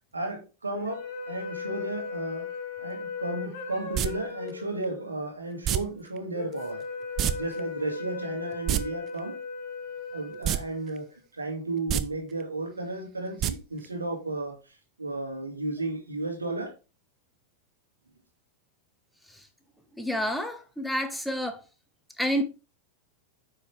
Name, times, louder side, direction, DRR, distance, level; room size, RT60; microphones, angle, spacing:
voice 1, 0.1-2.5 2.8-6.8 7.4-9.4 10.1-11.1 11.3-14.6 15.0-16.7, right 2 dB, 80° right, 2.3 m, -33 dB
sound 1, 0.7-11.1, left 5 dB, 45° left, 2.7 m, -38 dB
sound 2, 3.9-4.1 5.6-5.8 7.2-7.3 7.6-7.7 8.5-8.8 10.4-10.6 11.0-11.1 11.8-12.0 13.4-13.5 13.8-13.9, right 11 dB, 35° right, 0.6 m, -25 dB
voice 2, 20.0-21.6 22.2-22.4, equal, ahead, 1.1 m, -29 dB
9.0 x 5.5 x 3.4 m
figure-of-eight pair, 90°, 0 cm